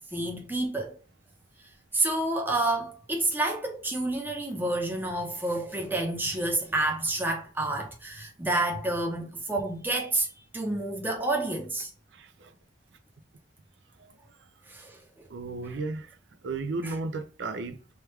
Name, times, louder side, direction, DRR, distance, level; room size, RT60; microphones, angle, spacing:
voice 1, 0.1-1.0 1.9-10.3 10.5-11.9 14.7-15.3 16.8-16.9, right 2 dB, 10° right, 0.7 m, -29 dB
voice 2, 12.1-12.5 14.0-14.1 15.3-16.2 16.4-17.8, right 3 dB, 70° right, 0.4 m, -34 dB
3.1 x 2.3 x 3.1 m
head